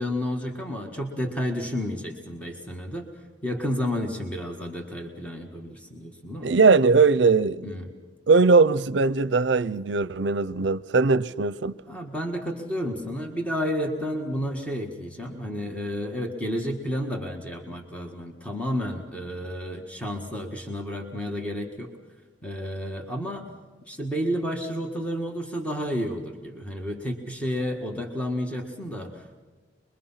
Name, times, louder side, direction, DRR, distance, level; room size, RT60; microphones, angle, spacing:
voice 1, 0.0-3.1 3.4-6.5 7.6-7.9 11.9-21.9 22.4-23.5 23.9-29.4, equal, 5° left, 1.8 m, -31 dB
voice 2, 6.4-7.8 8.3-11.7, right 4 dB, 65° right, 0.6 m, -20 dB
25.0 x 22.5 x 5.8 m
head